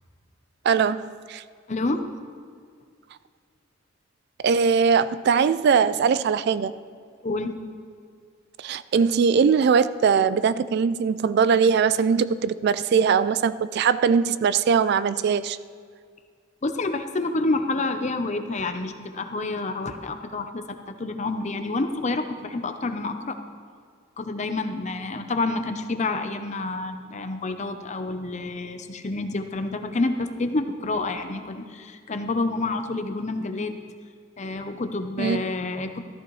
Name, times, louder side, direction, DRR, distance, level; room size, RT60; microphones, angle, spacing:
voice 1, 0.7-1.4 4.4-6.7 8.6-15.6 35.2-35.4, right 6 dB, 55° right, 15 dB, 0.3 m, -21 dB
voice 2, 1.7-2.1 7.2-7.5 16.6-23.4 24.2-33.8 34.4-36.0, left 2 dB, 35° left, 8 dB, 0.7 m, -28 dB
14.5 x 13.5 x 3.1 m, 2.1 s
head